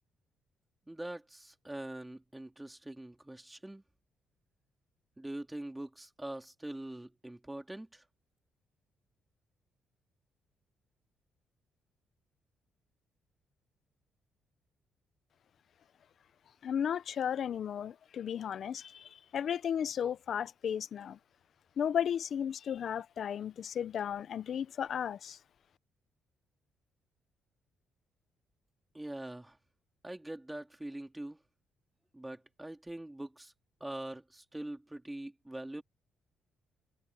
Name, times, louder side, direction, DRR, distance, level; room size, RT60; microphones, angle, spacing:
voice 1, 0.9-3.8 5.2-8.0 28.9-29.6 30.0-31.4 32.1-33.5 33.8-35.8, right 1 dB, 10° right, 3.4 m, -43 dB
voice 2, 16.6-18.8 19.3-21.2 21.8-25.4, left 8 dB, 60° left, 0.9 m, -34 dB
cardioid pair, 90°, 0 cm